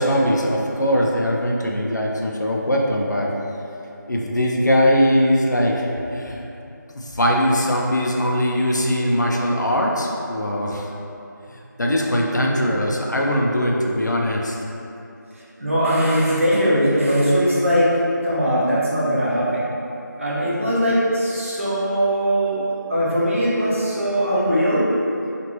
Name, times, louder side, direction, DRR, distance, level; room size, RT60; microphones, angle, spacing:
voice 1, 0.0-3.3 4.1-6.4 6.9-10.9 11.8-14.6, equal, 65° left, -1 dB, 0.4 m, -21 dB
voice 2, 15.6-17.9 18.2-19.7 20.2-22.6 22.9-24.8, equal, 40° right, -9 dB, 0.7 m, -20 dB
2.9 x 2.5 x 3.0 m, 2.8 s
figure-of-eight pair, 180°, 11 cm